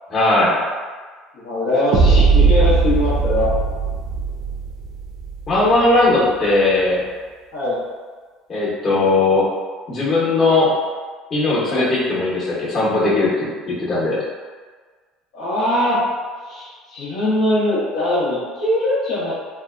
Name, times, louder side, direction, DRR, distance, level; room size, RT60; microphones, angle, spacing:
voice 1, 0.1-0.6 5.5-7.0 8.5-9.5 9.9-10.7 11.3-14.2, left 2 dB, 40° left, -8 dB, 1.0 m, -18 dB
voice 2, 1.3-3.5 7.5-7.8 11.7-11.9 15.3-16.0 16.5-19.3, left 1 dB, 70° left, -10 dB, 0.8 m, -21 dB
sound 1, 1.9-5.9, right 4 dB, 65° right, 0.4 m, -18 dB
2.6 x 2.2 x 2.3 m, 1.5 s
hypercardioid pair, 75°, 0 cm